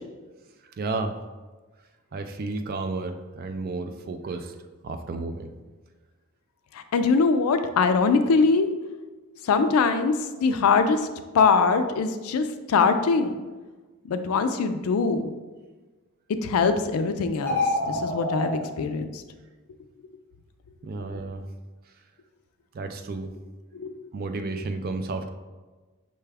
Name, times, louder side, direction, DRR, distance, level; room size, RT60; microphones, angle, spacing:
voice 1, 0.8-1.2 2.1-4.5 4.8-5.5 20.8-21.4 22.7-23.3 24.1-25.3, right 3 dB, 45° right, 8 dB, 0.3 m, -32 dB
voice 2, 6.7-8.7 9.4-11.1 11.3-13.4 14.1-15.3 16.4-17.6 17.9-19.2 23.7-23.9, left 4 dB, 75° left, 9 dB, 0.4 m, -22 dB
sound 1, 17.3-18.5, left 2 dB, 10° left, 0.9 m, -26 dB
5.8 x 2.2 x 3.3 m, 1.3 s
head